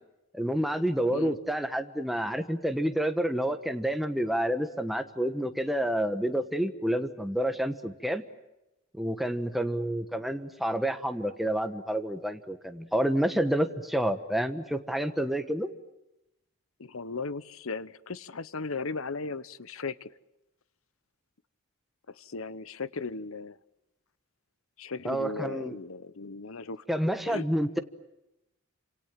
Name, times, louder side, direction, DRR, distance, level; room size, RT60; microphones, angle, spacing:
voice 1, 0.3-8.2 8.9-15.7 25.0-25.8 26.9-27.8, right 1 dB, ahead, 7 dB, 1.3 m, -29 dB
voice 2, 16.8-20.1 22.1-23.6 24.8-26.8 27.3-27.4, left 4 dB, 75° left, 16 dB, 1.0 m, -37 dB
29.0 x 27.0 x 7.5 m, 0.93 s
head